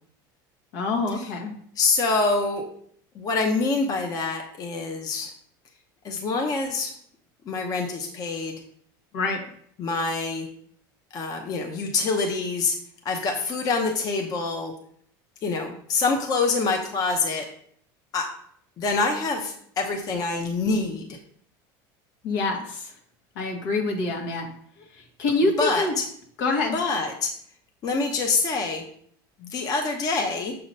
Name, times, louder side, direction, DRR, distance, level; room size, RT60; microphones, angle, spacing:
voice 1, 0.7-1.5 9.1-9.4 22.2-22.9 23.3-24.5 25.2-25.9 26.4-26.8, left 3 dB, 75° left, 1 dB, 1.3 m, -25 dB
voice 2, 1.8-2.7 3.1-5.3 6.0-6.9 7.4-8.6 9.8-10.5 11.1-12.8 13.0-14.7 15.4-17.5 18.1-18.3 18.8-21.2 25.6-26.1 26.7-27.3 27.8-28.8 29.4-30.5, left 3 dB, 35° left, 3 dB, 0.8 m, -26 dB
6.5 x 2.8 x 5.2 m, 0.63 s
supercardioid pair, 130°, 11 cm